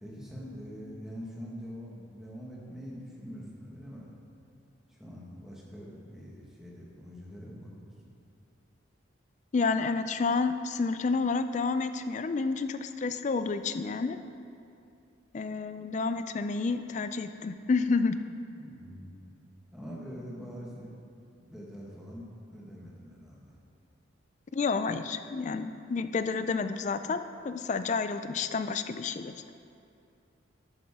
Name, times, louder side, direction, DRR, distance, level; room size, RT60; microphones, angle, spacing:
voice 1, 0.0-4.1 4.9-7.9 18.6-19.2 19.7-21.0 21.4-23.5, equal, ahead, -5 dB, 1.4 m, -44 dB
voice 2, 9.5-14.2 15.3-18.2 24.5-29.3, left 4 dB, 35° left, 10 dB, 0.3 m, -30 dB
11.0 x 9.0 x 3.6 m, 2.6 s
head